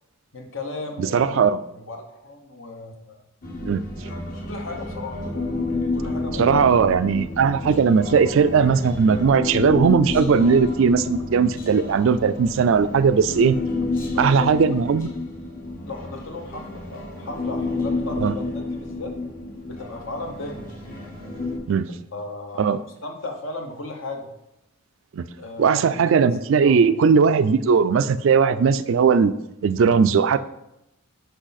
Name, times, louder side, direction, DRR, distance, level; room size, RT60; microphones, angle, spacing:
voice 1, 0.3-1.4 1.7-3.2 4.5-5.2 5.9-6.9 13.8-14.4 14.8-14.9 15.9-19.1 19.7-21.6 22.1-24.3 25.4-26.0 26.6-27.0, left 2 dB, 60° left, 4 dB, 1.0 m, -36 dB
voice 2, 1.0-1.6 3.6-3.9 6.4-13.6 14.2-15.1 18.2-18.3 21.7-21.9 22.6-22.8 25.1-25.2 25.6-29.3 29.6-30.4, right 6 dB, 60° right, 13 dB, 0.3 m, -18 dB
Human voice, 3.4-21.6, left 2 dB, 40° left, 1.2 m, -30 dB
6.3 x 5.4 x 4.1 m, 0.88 s
head